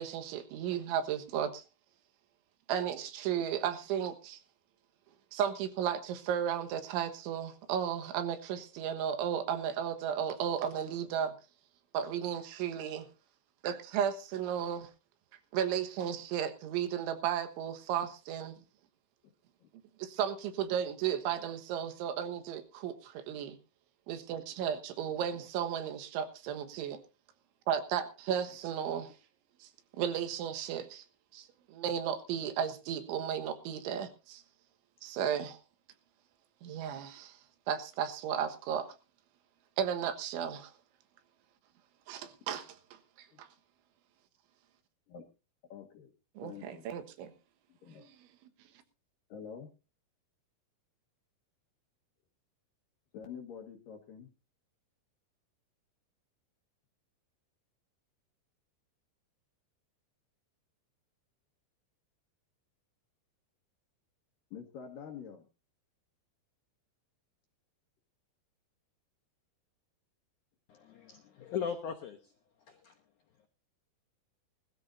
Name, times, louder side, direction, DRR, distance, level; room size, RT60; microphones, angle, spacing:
voice 1, 0.0-1.6 2.7-4.4 5.3-11.3 11.9-13.1 13.6-14.9 15.5-18.6 20.0-23.6 24.1-27.0 27.7-29.1 29.6-29.7 29.9-31.0 31.3-34.4 35.0-35.6 36.6-37.4 37.7-38.9 39.8-40.7 42.1-42.8 43.4-43.5 46.4-47.3 48.0-48.1, right 9 dB, 85° right, 8 dB, 3.8 m, -34 dB
voice 2, 25.2-25.5 28.5-28.6 43.3-43.4 45.1-45.3 45.7-46.1 46.4-46.9 47.7-48.0 49.3-49.7 53.1-54.3 64.5-65.5, left 7 dB, 65° left, 4 dB, 2.5 m, -47 dB
voice 3, 70.7-72.3 72.7-72.9, left 7 dB, 85° left, 5 dB, 1.7 m, -39 dB
20.5 x 13.5 x 2.7 m, 0.32 s
omnidirectional pair, 5.3 m